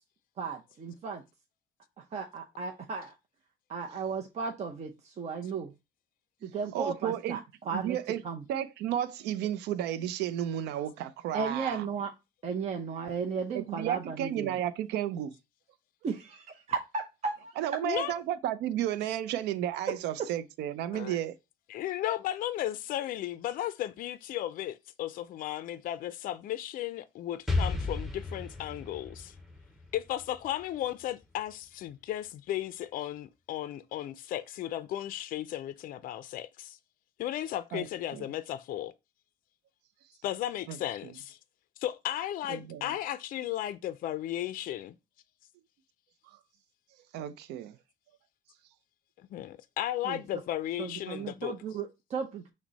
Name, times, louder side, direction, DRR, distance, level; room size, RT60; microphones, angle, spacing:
voice 1, 0.4-1.2 2.0-3.1 3.7-5.7 6.4-7.4 7.7-8.0 8.2-8.4 11.3-12.1 12.4-14.6 16.0-17.5 50.0-50.2 50.8-52.5, right 5 dB, 40° right, 0.6 m, -35 dB
voice 2, 6.7-7.4 7.7-8.2 8.5-11.8 13.5-15.3 17.6-21.4 37.7-37.9 38.1-38.2 40.7-40.8 42.5-42.9 47.1-47.7, right 11 dB, 80° right, 0.5 m, -32 dB
voice 3, 17.8-18.2 20.9-21.2 21.7-29.3 29.9-36.8 37.2-38.9 40.2-41.4 41.8-45.0 49.3-51.5, left 12 dB, 55° left, 0.4 m, -35 dB
Explosion, 27.5-31.2, left 3 dB, ahead, 0.8 m, -34 dB
6.0 x 2.1 x 4.0 m
cardioid pair, 110°, 17 cm